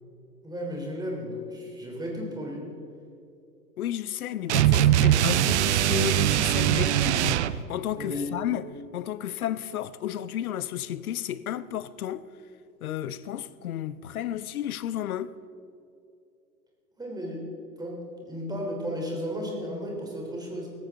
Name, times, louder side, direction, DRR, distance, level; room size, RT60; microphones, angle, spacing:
voice 1, 0.4-2.7 7.9-8.4 17.0-17.4 17.8-20.7, equal, 10° right, 3.1 m, -34 dB
voice 2, 3.8-8.7 8.9-12.3 12.8-15.3, left 11 dB, 60° left, 0.7 m, -32 dB
sound 1, 4.5-7.6, right 12 dB, 45° right, 0.5 m, -21 dB
17.5 x 15.0 x 3.6 m
figure-of-eight pair, 100°, 49 cm